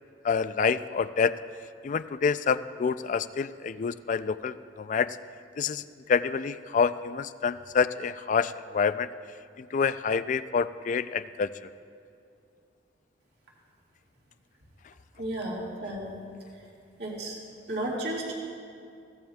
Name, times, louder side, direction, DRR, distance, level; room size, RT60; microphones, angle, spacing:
voice 1, 0.2-1.3 1.8-5.2 5.6-5.8 6.1-9.1 9.7-11.5, left 5 dB, 40° left, 13 dB, 0.3 m, -27 dB
voice 2, 15.2-16.1 17.0-17.4 17.7-18.3, right 1 dB, 60° right, -3 dB, 2.0 m, -33 dB
21.5 x 16.0 x 2.3 m, 2.4 s
head